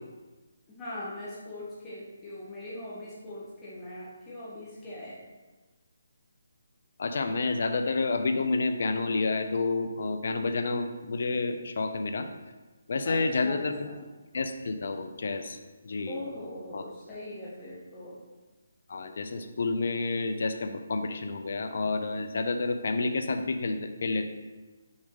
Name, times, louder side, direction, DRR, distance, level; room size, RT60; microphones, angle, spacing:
voice 1, 0.7-5.2 13.0-14.0 16.1-18.1, left 1 dB, 15° left, -9 dB, 1.6 m, -40 dB
voice 2, 7.0-12.3 12.9-13.9 14.3-16.2 16.7-16.8 18.9-24.3, left 3 dB, 60° left, 8 dB, 0.6 m, -29 dB
6.1 x 5.0 x 4.0 m, 1.2 s
hypercardioid pair, 155°, 0 cm